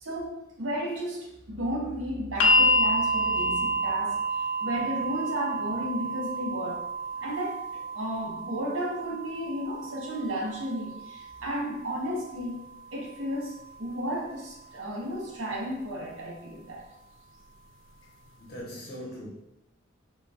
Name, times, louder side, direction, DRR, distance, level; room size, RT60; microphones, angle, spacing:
voice 1, 0.0-6.8 7.2-12.6 12.9-16.8, equal, 85° right, 0.8 m, -33 dB
sound 1, 2.4-14.5 15.6-15.7, equal, 75° left, 0.3 m, -30 dB
voice 2, 3.3-3.9 7.1-7.3 18.4-19.3, equal, 50° left, 0.9 m, -41 dB
3.6 x 2.2 x 2.5 m
head